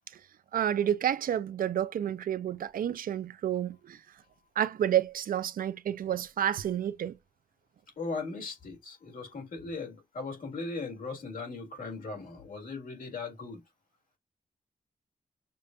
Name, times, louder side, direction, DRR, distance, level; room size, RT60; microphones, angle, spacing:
voice 1, 0.5-4.0 4.6-7.1, right 10 dB, 85° right, 0.4 m, -29 dB
voice 2, 8.0-13.6, left 3 dB, 80° left, 2.0 m, -38 dB
6.6 x 2.2 x 2.5 m
wide cardioid pair, 150°, 14 cm